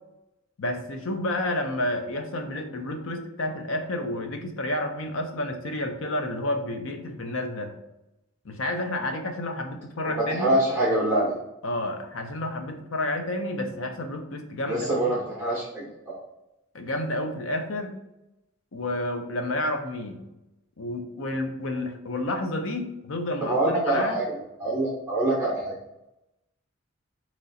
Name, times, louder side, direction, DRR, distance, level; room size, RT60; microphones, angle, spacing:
voice 1, 0.6-7.7 8.4-10.6 11.6-15.2 16.7-18.0 18.7-20.2 20.8-24.2, left 1 dB, 65° left, 5 dB, 0.7 m, -30 dB
voice 2, 10.1-11.3 14.7-16.2 23.4-25.7, right 1 dB, 10° right, -6 dB, 0.9 m, -25 dB
4.0 x 3.0 x 4.1 m, 0.91 s
head